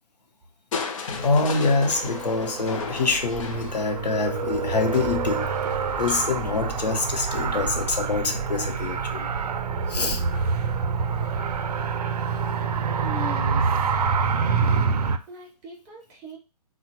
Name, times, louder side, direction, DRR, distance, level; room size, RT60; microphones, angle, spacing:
Crushing, 0.7-8.7 10.2-10.7 11.2-11.3, left 5 dB, 55° left, 0.5 m, -37 dB
voice 1, 1.0-5.5 6.0-9.3 9.9-10.2, left 3 dB, 90° left, 0.7 m, -25 dB
Car, 1.2-15.2, right 5 dB, 70° right, 0.4 m, -27 dB
voice 2, 13.0-13.9 14.5-15.0 15.3-16.4, equal, 10° right, 0.4 m, -40 dB
2.9 x 2.1 x 2.8 m
hypercardioid pair, 145°, 21 cm